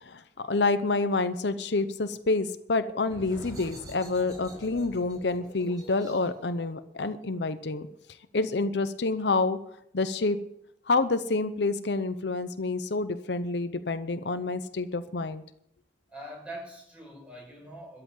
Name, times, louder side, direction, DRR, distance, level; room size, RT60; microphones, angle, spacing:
voice 1, 0.0-7.9 8.3-9.6 9.9-10.4 10.9-15.4, left 3 dB, 75° left, 11 dB, 0.8 m, -28 dB
sound 1, 3.0-8.4, right 1 dB, 25° right, 4.6 m, -48 dB
voice 2, 16.1-18.0, right 1 dB, 5° right, -1 dB, 5.9 m, -43 dB
13.0 x 7.8 x 9.1 m, 0.76 s
head